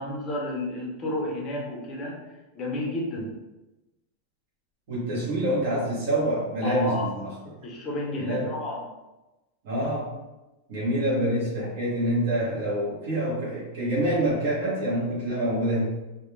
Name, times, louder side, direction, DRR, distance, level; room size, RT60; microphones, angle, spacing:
voice 1, 0.0-2.2 2.5-3.3 6.6-7.1 7.6-8.8, left 1 dB, 20° left, -2 dB, 0.5 m, -31 dB
voice 2, 4.9-7.1 8.2-8.5 9.6-10.1 10.7-15.8, right 1 dB, 55° right, -7 dB, 0.7 m, -26 dB
2.1 x 2.1 x 3.0 m, 1.0 s
supercardioid pair, 165°, 0 cm